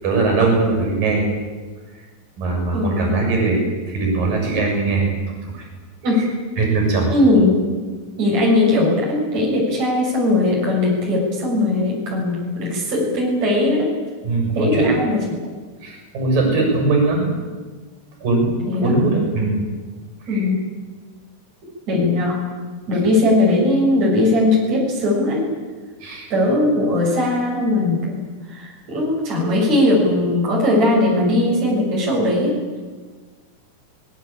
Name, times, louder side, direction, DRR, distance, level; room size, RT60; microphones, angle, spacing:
voice 1, 0.0-1.3 2.4-5.1 5.4-5.6 6.1-6.3 6.6-7.1 14.2-14.9 15.8-17.3 18.2-19.6 20.2-20.5 26.0-26.3, right 3 dB, 65° right, 1 dB, 8.7 m, -20 dB
voice 2, 2.7-3.1 6.0-6.3 7.1-7.9 8.2-13.9 14.5-15.4 18.7-18.9 20.3-20.6 21.9-22.4 22.9-25.5 26.3-28.2 28.5-32.6, left 2 dB, 50° right, -3 dB, 7.9 m, -19 dB
26.0 x 21.5 x 8.8 m, 1.4 s
omnidirectional pair, 4.2 m